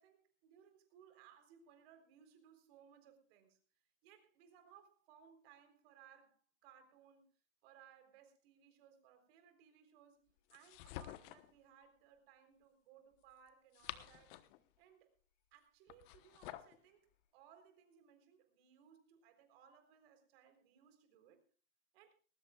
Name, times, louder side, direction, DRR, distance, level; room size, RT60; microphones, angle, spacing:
voice 1, 0.0-3.6 4.0-7.3 7.6-14.5 14.8-15.1 15.5-21.5 21.9-22.1, right 8 dB, 45° right, 7 dB, 4.0 m, -64 dB
sound 1, 10.5-11.5 13.5-14.6 15.9-16.8, left 15 dB, 40° left, 1.1 m, -50 dB
20.0 x 19.0 x 2.4 m, 0.36 s
hypercardioid pair, 115°, 41 cm